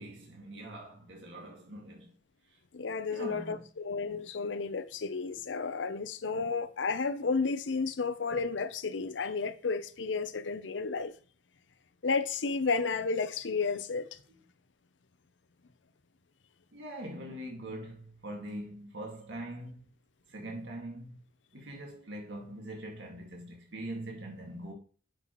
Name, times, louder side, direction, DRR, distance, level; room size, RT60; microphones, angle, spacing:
voice 1, 0.0-2.1 3.1-3.6 6.3-6.4 16.7-19.8 20.3-21.2 21.5-24.7, right 1 dB, 80° right, 2.0 m, -42 dB
voice 2, 2.7-11.1 12.0-14.2, left 4 dB, 90° left, 0.7 m, -32 dB
9.7 x 5.5 x 3.0 m
head